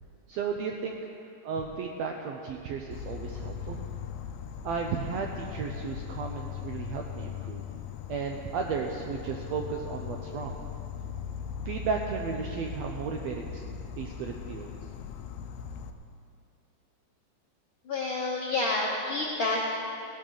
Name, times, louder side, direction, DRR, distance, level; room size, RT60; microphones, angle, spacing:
voice 1, 0.3-1.0 1.4-3.8 4.6-7.6 8.1-10.6 11.6-13.6 14.0-14.7, right 5 dB, 80° right, 2 dB, 1.5 m, -34 dB
Insect, 2.9-15.9, left 7 dB, 85° left, 1.4 m, -39 dB
voice 2, 17.9-19.6, left 2 dB, 70° left, -3 dB, 1.2 m, -29 dB
17.0 x 12.5 x 3.9 m, 2.6 s
omnidirectional pair, 3.7 m